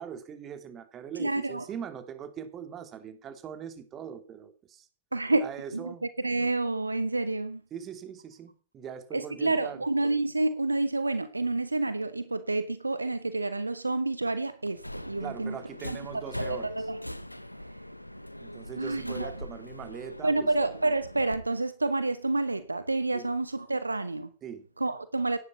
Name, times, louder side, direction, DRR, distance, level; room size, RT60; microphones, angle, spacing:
voice 1, 0.0-4.9 5.3-6.0 7.7-9.8 15.2-16.7 18.4-20.5 23.1-23.3 24.4-24.7, right 8 dB, 30° right, 2.9 m, -41 dB
voice 2, 1.2-1.7 5.1-7.6 9.1-15.6 15.9-16.0 16.9-17.0 18.8-19.3 20.2-24.3 24.8-25.4, right 2 dB, 80° right, 0.9 m, -29 dB
Subway metro underground, 14.7-21.4, left 1 dB, 90° left, 0.8 m, -40 dB
17.0 x 11.0 x 5.6 m
figure-of-eight pair, 90°, 0 cm